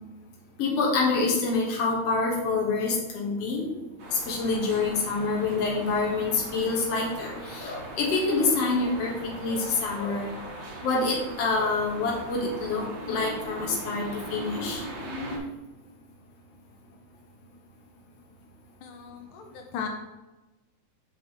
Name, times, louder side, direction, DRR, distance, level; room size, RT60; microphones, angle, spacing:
voice 1, 0.6-3.7 4.1-9.1 9.4-10.3 10.8-14.0 14.3-14.8, left 3 dB, 55° left, -3 dB, 2.7 m, -26 dB
sound 1, 4.0-15.4, equal, 60° right, 3.1 m, -39 dB
voice 2, 18.8-19.9, left 7 dB, 85° left, 3 dB, 2.3 m, -37 dB
8.0 x 7.0 x 3.3 m, 1.1 s
omnidirectional pair, 3.5 m